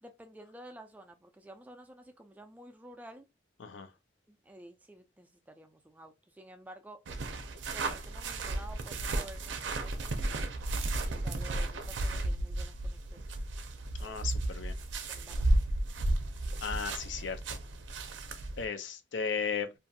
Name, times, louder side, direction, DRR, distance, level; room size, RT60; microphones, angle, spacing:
voice 1, 0.0-3.3 4.3-7.0 7.7-10.2 11.0-13.3 14.0-14.3 15.1-15.5, right 1 dB, 10° right, 0.3 m, -52 dB
sound 1, 7.1-18.7, right 2 dB, 75° right, 0.5 m, -33 dB
voice 2, 14.0-14.7 16.6-17.6 18.6-19.7, left 6 dB, 75° left, 0.5 m, -35 dB
2.5 x 2.3 x 2.6 m
head